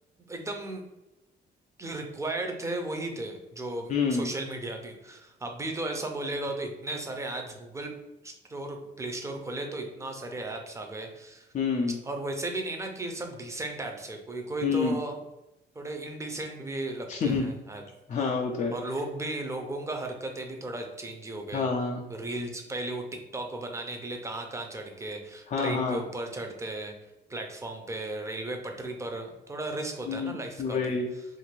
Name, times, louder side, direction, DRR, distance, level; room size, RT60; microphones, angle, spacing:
voice 1, 0.3-0.8 1.8-7.9 8.2-11.5 12.0-15.2 15.7-17.8 18.2-18.3 18.7-21.7 22.1-26.9 27.3-31.2, right 2 dB, 15° right, 3 dB, 0.5 m, -35 dB
voice 2, 3.9-4.3 11.5-12.0 14.6-15.0 17.1-17.5 18.1-18.7 21.5-22.0 25.5-26.0 30.1-31.1, left 5 dB, 40° left, 0 dB, 0.4 m, -28 dB
2.6 x 2.5 x 3.1 m, 0.96 s
cardioid pair, 90°, 20 cm